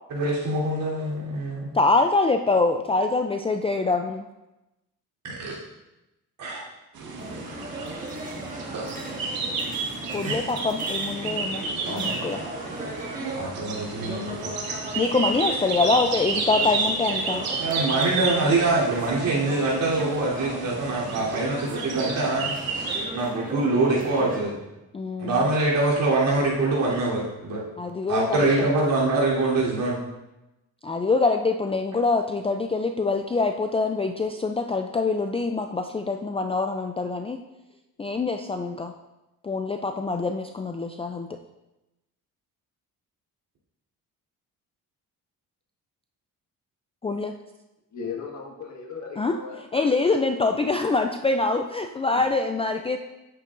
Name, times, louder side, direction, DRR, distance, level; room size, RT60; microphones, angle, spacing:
voice 1, 0.1-1.7 5.4-5.6 6.4-6.6 8.7-8.8 10.2-10.5 11.9-12.2 13.3-14.6 17.6-24.6 25.2-27.6 28.1-30.0, right 2 dB, 70° right, -6 dB, 3.4 m, -24 dB
voice 2, 1.7-4.2 10.1-12.4 15.0-17.4 24.9-25.4 27.8-28.7 30.8-37.4 38.0-38.9 39.4-41.3 47.0-47.3 49.2-53.0, left 3 dB, 15° left, 5 dB, 0.4 m, -25 dB
sound 1, 6.9-23.0, right 4 dB, 90° right, 1.6 m, -31 dB
sound 2, 7.2-24.4, right 2 dB, 25° right, 1.5 m, -37 dB
voice 3, 16.4-16.9 47.9-49.8, left 5 dB, 55° left, 1 dB, 1.7 m, -37 dB
10.5 x 8.4 x 2.6 m, 0.98 s
cardioid pair, 115°, 35 cm